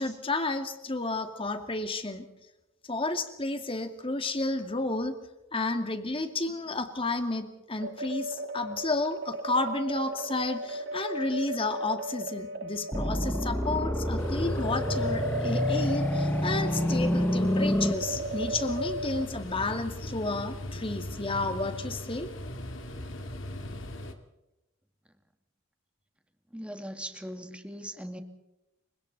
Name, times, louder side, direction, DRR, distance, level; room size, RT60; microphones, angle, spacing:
voice 1, 0.0-2.2 2.9-5.1 5.5-22.3, left 2 dB, 25° left, 7 dB, 2.3 m, -31 dB
sound 1, 7.8-19.3, right 1 dB, 60° right, 1.5 m, -36 dB
sound 2, 12.9-17.9, left 1 dB, 10° left, 0.7 m, -28 dB
sound 3, 14.2-24.1, left 1 dB, 70° left, 2.5 m, -39 dB
voice 2, 26.5-28.2, equal, 5° right, 6 dB, 2.0 m, -39 dB
29.5 x 25.0 x 4.1 m, 0.93 s
head